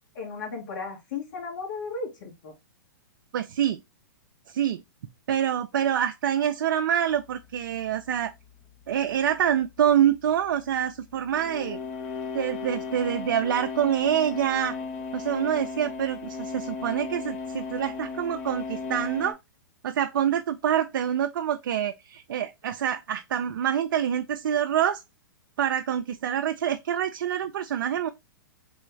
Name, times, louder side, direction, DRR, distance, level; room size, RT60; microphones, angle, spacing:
voice 1, 0.1-2.5, left 4 dB, 60° left, 1.7 m, -35 dB
voice 2, 3.3-3.8 4.5-4.8 5.3-8.3 8.9-11.8 12.3-14.7 15.1-19.4 19.8-25.0 25.6-28.1, right 9 dB, 70° right, 0.4 m, -26 dB
sound 1, 7.1-19.3, left 4 dB, 45° left, 0.7 m, -36 dB
3.4 x 2.3 x 3.0 m
hypercardioid pair, 130°, 11 cm